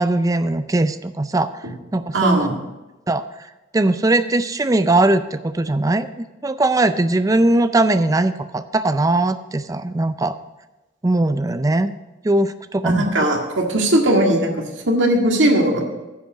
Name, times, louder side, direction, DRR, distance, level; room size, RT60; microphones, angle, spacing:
voice 1, 0.0-1.5 1.9-2.5 3.1-3.2 3.7-10.4 11.0-11.9 12.2-13.1, right 2 dB, 20° right, 12 dB, 0.4 m, -19 dB
voice 2, 2.1-2.6 12.8-15.8, right 1 dB, 80° right, 1 dB, 1.9 m, -18 dB
10.0 x 5.2 x 8.1 m, 1.1 s
head